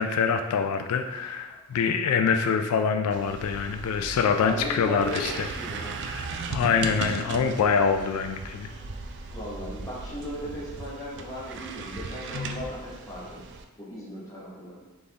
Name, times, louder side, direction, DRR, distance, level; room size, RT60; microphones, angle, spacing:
voice 1, 0.0-5.5 6.1-6.2 6.5-8.7 12.3-12.6, left 6 dB, 85° left, 7 dB, 0.3 m, -25 dB
sound 1, 3.1-13.6, right 4 dB, 55° right, 0.3 m, -37 dB
voice 2, 4.4-6.0 9.3-13.5 13.8-14.7, equal, 15° left, -6 dB, 1.0 m, -37 dB
4.0 x 3.6 x 3.4 m, 1.2 s
head